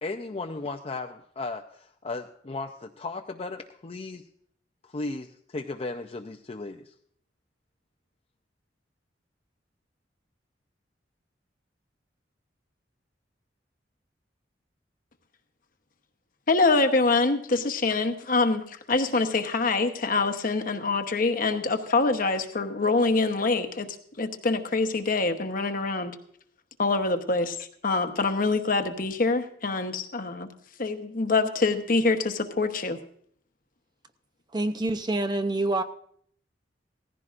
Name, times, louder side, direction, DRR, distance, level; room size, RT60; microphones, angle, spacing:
voice 1, 0.0-4.2 4.8-6.9, left 3 dB, 35° left, 0.5 m, -36 dB
voice 2, 16.5-26.2 26.8-27.6 27.8-30.5 30.8-33.0, left 3 dB, 50° left, 1.0 m, -25 dB
voice 3, 34.5-35.8, right 2 dB, 25° right, 0.6 m, -26 dB
17.5 x 15.0 x 2.5 m
head